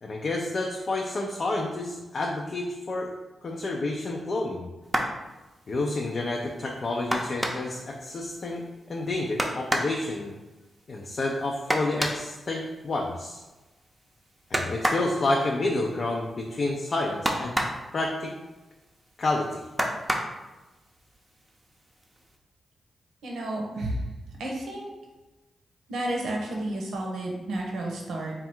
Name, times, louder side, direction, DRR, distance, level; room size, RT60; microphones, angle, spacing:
voice 1, 0.0-3.1 3.4-4.7 5.7-10.3 10.9-13.4 14.5-17.6 17.9-18.3 19.2-19.6, left 2 dB, 55° left, -1 dB, 0.5 m, -29 dB
sound 1, 4.8-5.2 7.1-7.8 9.4-10.0 11.7-12.3 14.5-15.1 17.2-17.9 19.8-20.4 21.5-21.6 22.0-22.2, right 1 dB, 20° right, 0.6 m, -27 dB
voice 2, 23.2-24.0 24.4-24.9 25.9-28.3, right 1 dB, 90° right, -1 dB, 0.7 m, -31 dB
3.4 x 2.4 x 4.2 m, 1.1 s
cardioid pair, 60°, 0 cm